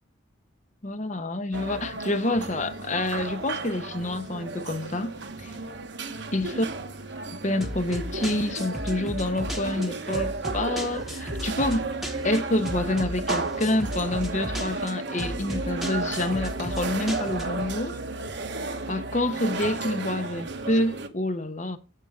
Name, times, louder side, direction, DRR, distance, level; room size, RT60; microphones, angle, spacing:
voice 1, 0.8-5.1 5.4-5.5 6.3-6.7 7.4-11.9 12.2-18.0 18.9-21.8, left 1 dB, 35° left, 0.9 m, -27 dB
sound 1, 1.5-21.1, right 3 dB, 55° right, 1.1 m, -33 dB
sound 2, 7.6-17.7, equal, ahead, 1.2 m, -36 dB
9.9 x 8.4 x 3.7 m
head